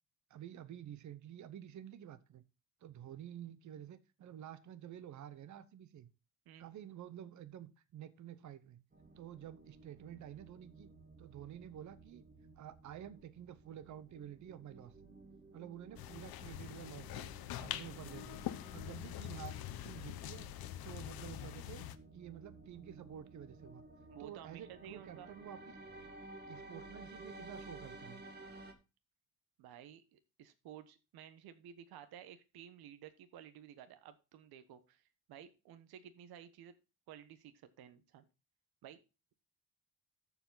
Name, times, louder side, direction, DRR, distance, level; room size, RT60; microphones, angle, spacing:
voice 1, 0.3-2.4 2.8-6.1 6.6-8.8 9.2-10.9 11.2-12.2 12.6-14.9 15.5-17.3 17.6-20.5 20.8-21.8 22.1-23.8 24.2-25.8 26.5-28.2, right 10 dB, 50° right, 13 dB, 0.9 m, -50 dB
sound 1, 8.9-28.7, right 2 dB, 25° right, 1.8 m, -55 dB
sound 2, 16.0-22.0, left 13 dB, 75° left, 0.8 m, -44 dB
voice 2, 24.1-25.3 29.6-36.7 37.1-38.2 38.8-39.0, right 10 dB, 80° right, 10 dB, 1.1 m, -54 dB
13.5 x 5.0 x 3.9 m, 0.30 s
cardioid pair, 120°, 37 cm